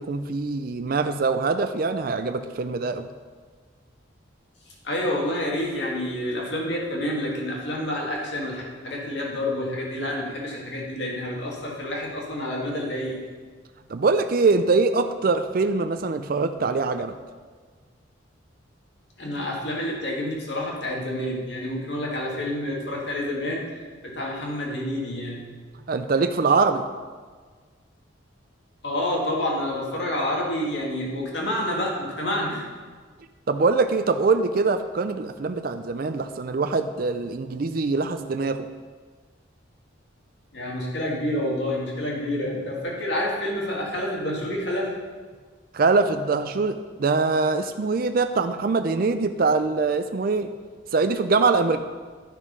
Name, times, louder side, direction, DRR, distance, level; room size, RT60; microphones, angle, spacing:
voice 1, 0.0-3.1 13.9-17.1 25.9-26.8 33.5-38.7 45.7-50.5 50.9-51.8, right 4 dB, 45° right, 8 dB, 0.4 m, -23 dB
voice 2, 4.8-13.2 19.2-25.5 28.8-32.6 40.5-44.9 51.7-51.8, left 1 dB, 60° left, -2 dB, 2.1 m, -28 dB
12.0 x 6.2 x 5.3 m, 1.5 s
head